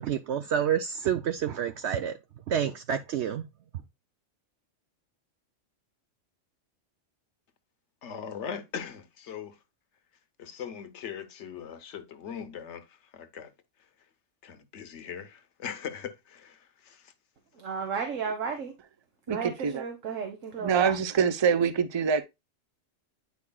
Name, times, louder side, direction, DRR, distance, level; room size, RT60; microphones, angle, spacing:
voice 1, 0.0-2.2 2.5-3.4, right 9 dB, 65° right, 0.8 m, -28 dB
voice 2, 8.0-9.6 10.4-13.5 14.4-17.1, left 7 dB, 65° left, 1.2 m, -40 dB
voice 3, 17.6-18.7 19.3-20.9, right 6 dB, 85° right, 1.5 m, -33 dB
voice 4, 19.3-19.8 20.6-22.2, right 6 dB, 30° right, 0.5 m, -25 dB
9.4 x 4.8 x 2.2 m
omnidirectional pair, 1.3 m